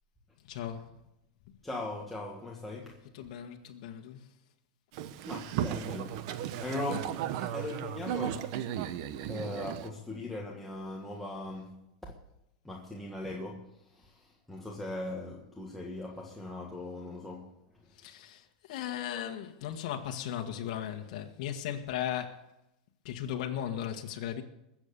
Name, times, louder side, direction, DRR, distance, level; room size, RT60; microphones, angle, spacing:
voice 1, 0.5-0.9 3.1-4.2 18.0-22.4 23.0-24.4, left 10 dB, 60° left, 1.6 m, -37 dB
voice 2, 1.6-3.0 5.2-6.3 6.6-8.5 9.3-11.8 12.6-17.5, left 2 dB, 5° left, 1.7 m, -39 dB
Boat Water vehicle, 4.9-9.9, right 10 dB, 55° right, 1.0 m, -35 dB
21.5 x 7.5 x 7.0 m
supercardioid pair, 145°, 4 cm